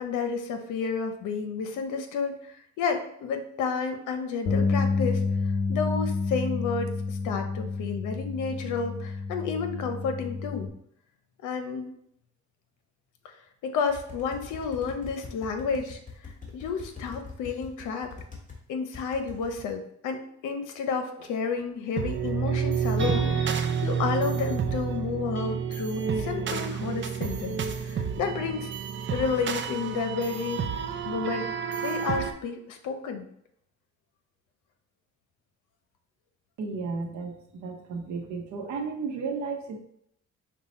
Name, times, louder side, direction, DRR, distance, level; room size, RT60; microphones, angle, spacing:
voice 1, 0.0-2.4 2.8-5.2 5.7-10.7 11.4-11.9 13.6-18.1 18.7-28.7 29.1-30.6 31.0-31.5 31.8-33.3, left 5 dB, 85° left, 6 dB, 0.7 m, -31 dB
Bass guitar, 4.4-10.7, left 4 dB, 55° left, 0.9 m, -29 dB
sound 1, 13.9-18.6 18.9-19.7, left 4 dB, 25° left, 1.6 m, -43 dB
sound 2, 22.0-32.3, right 6 dB, 40° right, 0.5 m, -29 dB
voice 2, 36.6-39.8, right 4 dB, 70° right, 3 dB, 0.9 m, -33 dB
5.5 x 2.3 x 4.1 m, 0.70 s
cardioid pair, 90°, 30 cm